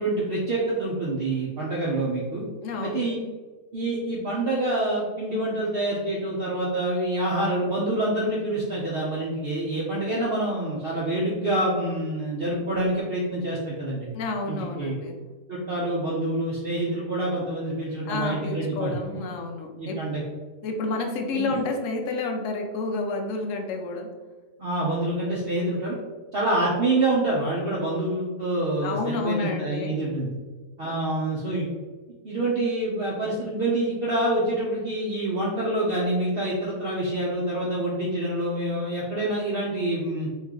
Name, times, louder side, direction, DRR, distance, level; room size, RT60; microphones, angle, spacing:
voice 1, 0.0-2.4 2.8-3.2 3.7-14.1 14.5-15.0 15.5-19.2 19.8-20.2 21.3-21.6 24.6-26.0 26.3-30.3 30.8-31.7 32.2-40.3, right 1 dB, 50° right, -5 dB, 0.8 m, -26 dB
voice 2, 2.6-3.1 14.1-15.2 18.0-20.0 20.6-24.1 28.8-29.9 30.8-30.9, left 3 dB, 70° left, 3 dB, 1.0 m, -30 dB
3.2 x 3.1 x 3.6 m, 1.3 s
omnidirectional pair, 1.5 m